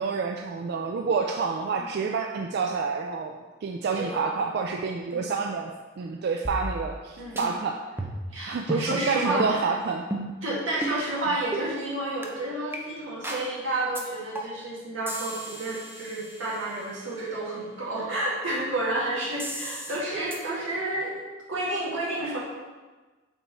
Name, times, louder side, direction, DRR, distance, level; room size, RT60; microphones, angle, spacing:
voice 1, 0.0-8.1 8.5-10.0, right 5 dB, 55° right, 3 dB, 0.3 m, -28 dB
voice 2, 1.7-2.2 4.0-4.5 5.1-5.3 7.2-7.6 8.3-9.7 10.4-21.2 21.5-22.4, right 1 dB, 90° right, -6 dB, 2.0 m, -30 dB
sound 1, 6.4-7.1 7.4-7.5 8.0-8.3 8.7-8.9 9.4-9.6 10.1-10.4 10.8-11.0 11.5-11.7 12.2-12.3 12.7-12.8 13.2-13.5 13.9-14.0 14.3-14.7 15.1-16.9 19.4-20.0 20.3-20.4, right 1 dB, 10° right, 0.6 m, -34 dB
7.0 x 3.6 x 4.1 m, 1.3 s
head